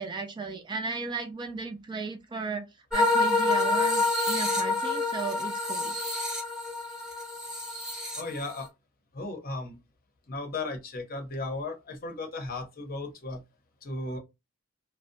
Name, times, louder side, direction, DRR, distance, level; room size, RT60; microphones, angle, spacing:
voice 1, 0.0-2.7 2.9-5.9, right 4 dB, 20° right, 0.3 m, -35 dB
sound 1, 2.9-8.6, left 2 dB, 5° right, 0.7 m, -27 dB
voice 2, 8.2-8.7 9.1-9.8 10.3-13.4 13.8-14.2, left 2 dB, 45° left, 0.6 m, -35 dB
2.6 x 2.0 x 2.5 m
head